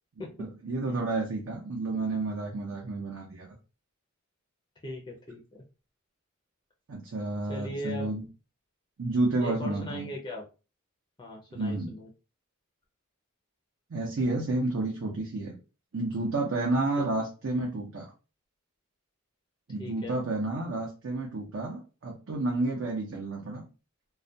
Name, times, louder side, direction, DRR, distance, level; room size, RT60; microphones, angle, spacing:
voice 1, 0.4-3.5 6.9-8.2 9.0-10.1 11.5-11.9 13.9-15.6 15.9-18.1 19.7-23.6, right 2 dB, 75° right, -2 dB, 0.6 m, -30 dB
voice 2, 4.8-5.4 7.5-8.1 9.4-10.4 11.2-12.1 17.0-17.1 19.8-20.2, left 1 dB, 20° left, -1 dB, 0.4 m, -38 dB
2.3 x 2.1 x 2.6 m, 0.32 s
head